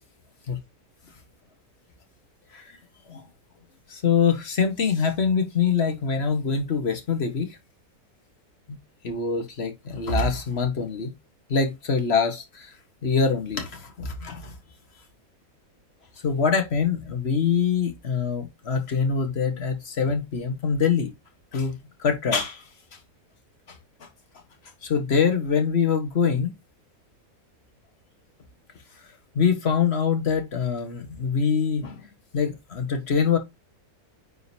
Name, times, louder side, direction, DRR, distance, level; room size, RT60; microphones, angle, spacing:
voice 1, 3.9-7.5 9.0-11.1 11.5-12.7 13.0-14.5 16.2-21.1 21.5-22.6 23.7-23.8 24.8-26.5 29.3-32.0 32.3-33.4, left 6 dB, 45° left, 1.4 m, -24 dB
9.5 x 3.8 x 2.7 m
omnidirectional pair, 1.6 m